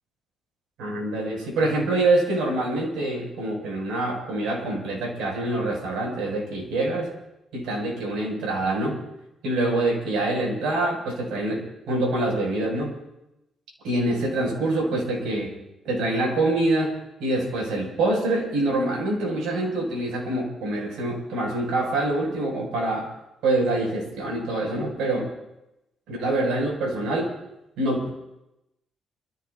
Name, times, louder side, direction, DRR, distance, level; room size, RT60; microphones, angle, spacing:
voice 1, 0.8-7.1 7.5-9.0 9.4-12.9 13.8-15.5 15.8-23.1 23.4-25.3 26.1-27.3 27.8-28.1, right 2 dB, 90° right, -1 dB, 7.9 m, -25 dB
29.5 x 16.0 x 3.0 m, 0.88 s
cardioid pair, 90°, 0 cm